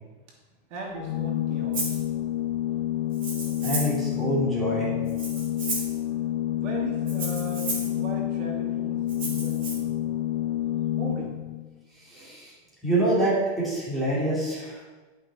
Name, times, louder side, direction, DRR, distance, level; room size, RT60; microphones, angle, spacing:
voice 1, 0.7-2.0 6.6-10.0 10.9-11.4, right 2 dB, 65° right, -2 dB, 2.5 m, -38 dB
Organ, 0.9-11.7, left 13 dB, 35° left, 0.4 m, -29 dB
Rattle (instrument), 1.7-2.0 3.1-4.0 5.1-6.0 7.1-7.9 9.1-9.7, right 3 dB, 20° right, 2.1 m, -33 dB
voice 2, 3.6-4.9 12.0-12.5 12.8-14.8, right 1 dB, ahead, -9 dB, 2.7 m, -26 dB
11.5 x 5.7 x 4.2 m, 1.2 s
supercardioid pair, 160°, 38 cm